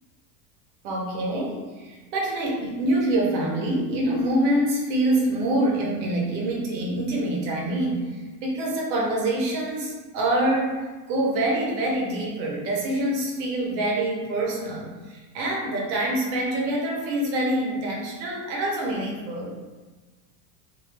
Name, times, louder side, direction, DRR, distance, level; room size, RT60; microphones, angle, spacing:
voice 1, 0.8-19.5, right 1 dB, 85° right, -2 dB, 1.1 m, -26 dB
2.6 x 2.6 x 3.3 m, 1.3 s
supercardioid pair, 150°, 50 cm